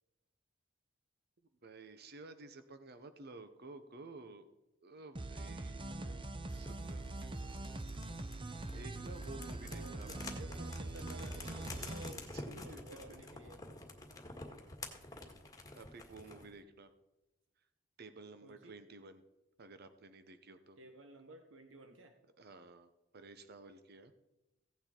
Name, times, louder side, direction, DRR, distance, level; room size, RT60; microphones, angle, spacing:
voice 1, 1.6-4.5 4.8-5.9 6.5-7.9 8.7-10.1 12.3-13.2 15.7-16.9 18.0-19.2 19.6-20.8 22.4-24.1, right 3 dB, 55° right, 10 dB, 0.8 m, -53 dB
sound 1, 5.2-12.1, right 2 dB, 25° right, 0.7 m, -43 dB
voice 2, 5.8-6.2 9.7-13.7 18.4-18.8 20.8-22.2, right 1 dB, 75° right, 5 dB, 1.1 m, -55 dB
sound 2, 6.5-16.5, left 2 dB, 20° left, 1.7 m, -50 dB
16.0 x 9.4 x 4.4 m, 0.97 s
head